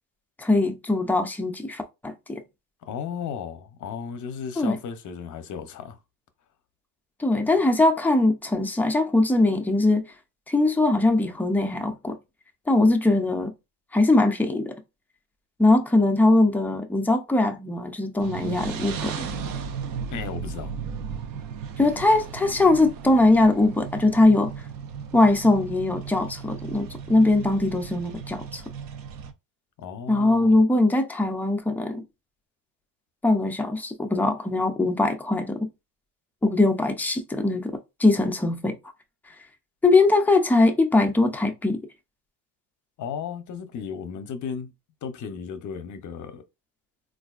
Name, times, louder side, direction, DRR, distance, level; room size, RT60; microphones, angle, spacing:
voice 1, 0.4-2.4 4.6-4.8 7.2-10.0 10.5-12.2 12.7-13.5 13.9-14.8 15.6-19.3 21.8-24.5 25.1-28.6 30.1-32.0 33.2-35.7 36.4-38.8 39.8-41.8, left 2 dB, 5° left, 0.3 m, -21 dB
voice 2, 2.8-6.0 20.1-20.7 29.8-30.6 43.0-44.7 45.0-46.4, left 7 dB, 45° left, 0.7 m, -35 dB
sound 1, 18.2-29.3, right 6 dB, 55° right, 0.6 m, -35 dB
4.0 x 2.5 x 2.4 m
cardioid pair, 140°, 42 cm